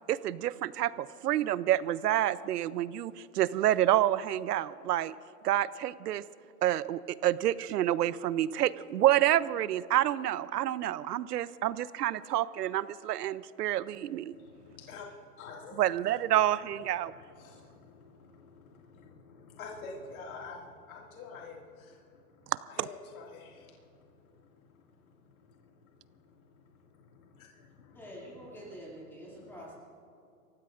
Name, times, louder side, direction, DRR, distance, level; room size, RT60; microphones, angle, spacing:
voice 1, 0.1-5.1 5.4-6.2 6.6-14.3 15.8-17.1 22.8-22.9, right 13 dB, 85° right, 18 dB, 0.7 m, -28 dB
voice 2, 14.3-15.1 15.4-15.8 16.9-28.1 29.4-29.6, left 4 dB, 60° left, -2 dB, 2.3 m, -49 dB
voice 3, 27.9-29.7, equal, 5° left, -6 dB, 2.5 m, -46 dB
27.0 x 15.5 x 2.5 m, 2.5 s
hypercardioid pair, 155°, 46 cm